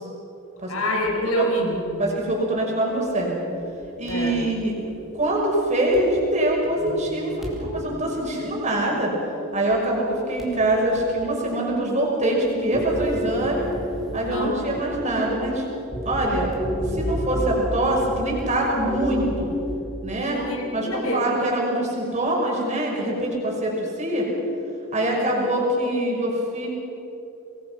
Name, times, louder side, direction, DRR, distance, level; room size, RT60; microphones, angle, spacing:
voice 1, 0.7-2.0 4.1-4.4 14.3-14.6 20.3-21.2, equal, 75° left, 1 dB, 5.2 m, -26 dB
sound 1, 1.0-1.2 1.7-2.1 2.4-2.5 3.0-3.1 3.6-6.0 6.4-9.2 9.5-10.0 10.4-11.1 11.5-11.9 12.2-19.8, equal, ahead, 4.1 m, -33 dB
voice 2, 2.0-3.5 4.0-4.7 5.1-9.1 9.5-13.7 14.1-15.6 16.0-16.5 16.9-19.5 20.0-20.4 20.7-24.3 24.9-26.7, right 1 dB, 30° right, -2 dB, 5.8 m, -24 dB
27.0 x 21.0 x 6.1 m, 2.9 s
head